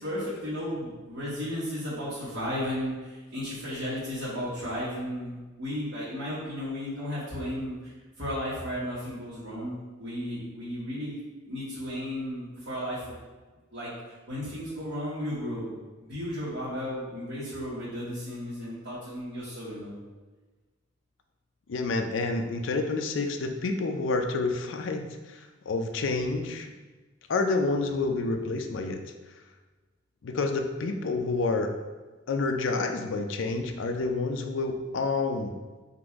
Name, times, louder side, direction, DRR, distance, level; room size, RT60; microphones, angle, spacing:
voice 1, 0.0-7.9 8.2-11.2 11.4-13.1 13.7-13.9 14.3-15.7 16.0-19.9, equal, 75° right, -11 dB, 1.4 m, -34 dB
voice 2, 21.7-26.7 27.3-29.0 30.2-31.8 32.3-35.5, left 3 dB, 70° left, 5 dB, 0.4 m, -29 dB
4.0 x 2.5 x 4.6 m, 1.3 s
head